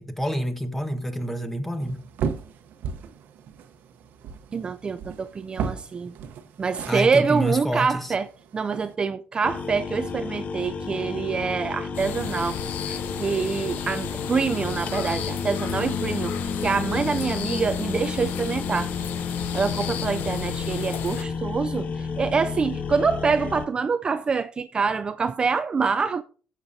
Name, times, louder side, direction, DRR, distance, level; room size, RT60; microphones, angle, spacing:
voice 1, 0.0-2.0 6.9-8.1, equal, 5° left, 1.3 m, -28 dB
sound 1, 1.8-8.9, right 6 dB, 75° right, 0.9 m, -36 dB
voice 2, 4.5-6.1 6.6-8.3 8.5-12.6 12.9-18.9 19.5-26.2, right 5 dB, 30° right, 0.3 m, -26 dB
sound 2, 9.4-23.7, left 5 dB, 50° left, 0.7 m, -31 dB
sound 3, 11.9-21.2, left 8 dB, 85° left, 0.9 m, -35 dB
16.0 x 7.2 x 2.7 m
cardioid pair, 110°, 3 cm